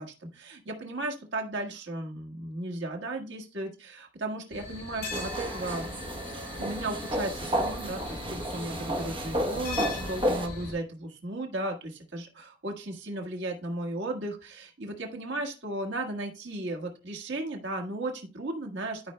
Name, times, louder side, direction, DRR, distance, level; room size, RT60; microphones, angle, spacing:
voice 1, 0.0-5.9 6.6-19.0, right 2 dB, 80° right, 1 dB, 1.5 m, -35 dB
sound 1, 4.5-10.7, left 3 dB, 55° left, 4.9 m, -39 dB
sound 2, 5.1-10.5, equal, 30° right, 1.0 m, -32 dB
12.5 x 5.3 x 2.2 m, 0.30 s
head